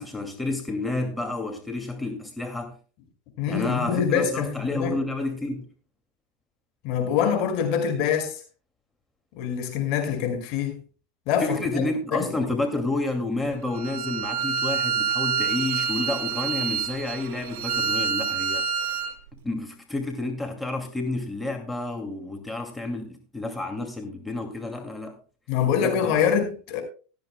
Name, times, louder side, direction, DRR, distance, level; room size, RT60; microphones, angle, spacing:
voice 1, 0.0-2.8 3.5-5.7 11.4-18.7 19.4-25.2 25.7-26.2, left 2 dB, 5° left, 2.4 m, -30 dB
voice 2, 3.4-5.0 6.8-8.4 9.4-10.8 11.3-11.6 12.1-12.3 25.5-26.8, left 8 dB, 60° left, 5.2 m, -25 dB
Bowed string instrument, 13.7-19.1, right 7 dB, 65° right, 2.0 m, -27 dB
16.5 x 13.5 x 2.2 m
hypercardioid pair, 100°, 0 cm